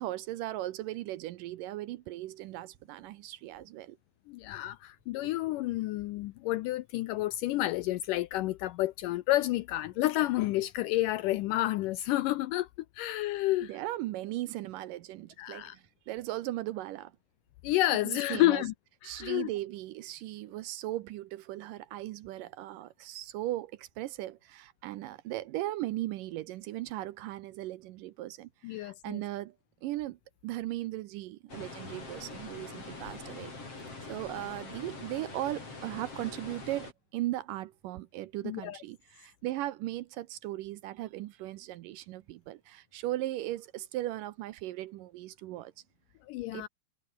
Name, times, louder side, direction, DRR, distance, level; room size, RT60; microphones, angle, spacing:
voice 1, 0.0-4.0 13.6-17.1 18.0-18.6 19.0-29.6 29.8-33.5 34.1-45.7 46.5-46.7, right 15 dB, 75° right, 2.1 m, -38 dB
voice 2, 4.3-12.7 13.0-13.7 15.4-15.8 17.6-18.7 19.0-19.5 28.6-29.2 38.4-38.8 46.3-46.7, left 16 dB, 80° left, 1.9 m, -30 dB
sound 1, 31.5-36.9, left 3 dB, 40° left, 7.5 m, -44 dB
omnidirectional pair, 4.3 m